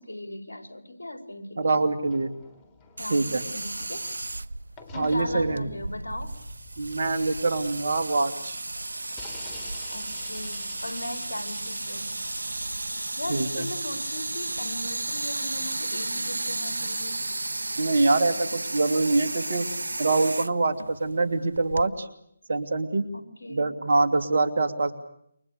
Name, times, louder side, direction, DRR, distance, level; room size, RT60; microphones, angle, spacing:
voice 1, 0.0-1.8 3.0-4.0 4.9-6.3 9.9-12.2 13.0-17.2 23.1-23.6, left 1 dB, 80° left, 7 dB, 4.4 m, -38 dB
voice 2, 1.6-2.3 3.1-3.4 5.0-5.7 6.8-8.6 13.3-13.7 17.8-19.7 20.0-22.1 22.5-23.1 23.5-24.9, right 3 dB, 60° right, 9 dB, 2.7 m, -24 dB
sound 1, 2.0-4.3 4.8-8.4 9.1-14.9, left 3 dB, 20° left, 3.5 m, -49 dB
sound 2, 3.0-21.9, right 2 dB, 80° right, 0.9 m, -34 dB
28.5 x 24.0 x 6.6 m, 0.72 s
figure-of-eight pair, 150°, 0 cm